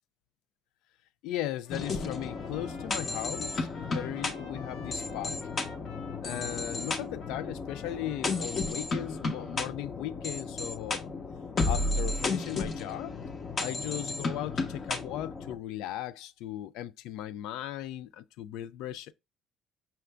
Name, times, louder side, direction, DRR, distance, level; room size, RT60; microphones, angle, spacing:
voice 1, 1.2-5.4 6.2-11.1 11.6-13.1 13.6-19.1, left 13 dB, 85° left, 0.3 m, -37 dB
Trumpet, 1.6-8.5, left 3 dB, 60° left, 1.5 m, -52 dB
sound 1, 1.7-15.5, left 3 dB, 30° left, 0.7 m, -33 dB
5.7 x 2.5 x 3.3 m
cardioid pair, 160°, 0 cm